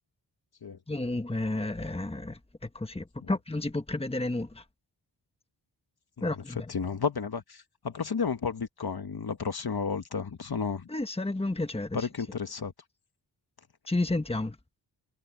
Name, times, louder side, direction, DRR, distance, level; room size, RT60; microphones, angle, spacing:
voice 1, 0.9-4.6 6.2-6.7 10.9-12.0 13.9-14.6, left 2 dB, 15° left, 1.4 m, -31 dB
voice 2, 6.2-10.9 11.9-12.7, left 5 dB, 55° left, 1.4 m, -32 dB
wide cardioid pair, 105°, 44 cm